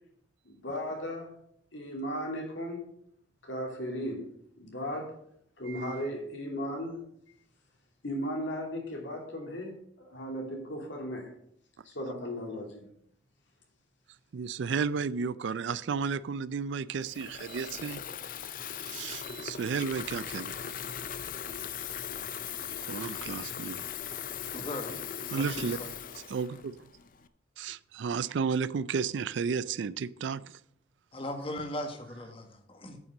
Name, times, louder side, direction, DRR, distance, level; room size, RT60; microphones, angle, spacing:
voice 1, 0.4-1.3 1.7-2.8 3.4-4.3 4.5-5.1 5.6-7.0 8.0-11.3 11.8-12.8, equal, 75° left, 2.8 m, -36 dB
voice 2, 14.3-18.0 18.8-20.7 22.9-23.8 25.3-25.8 26.3-26.8 27.6-30.6, right 5 dB, 75° right, 0.4 m, -33 dB
Water tap faucet / Fill (with liquid), 17.0-27.3, left 8 dB, 45° left, 0.5 m, -39 dB
voice 3, 24.5-25.0 25.3-25.9 31.1-33.0, left 1 dB, 30° left, 1.4 m, -38 dB
9.3 x 5.9 x 7.4 m
head